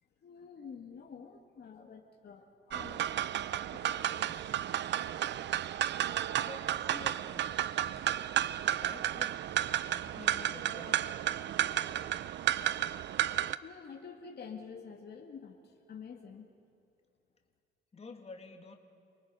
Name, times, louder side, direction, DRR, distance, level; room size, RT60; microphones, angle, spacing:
voice 1, 0.2-3.1 3.7-5.2 13.6-16.4, left 6 dB, 55° left, 2 dB, 1.9 m, -49 dB
sound 1, 2.7-13.6, right 11 dB, 65° right, 0.6 m, -32 dB
voice 2, 6.4-7.5 8.6-9.4 9.9-11.2 17.9-18.8, left 3 dB, 30° left, 3 dB, 2.3 m, -49 dB
28.5 x 19.5 x 5.6 m, 2.5 s
cardioid pair, 90°, 20 cm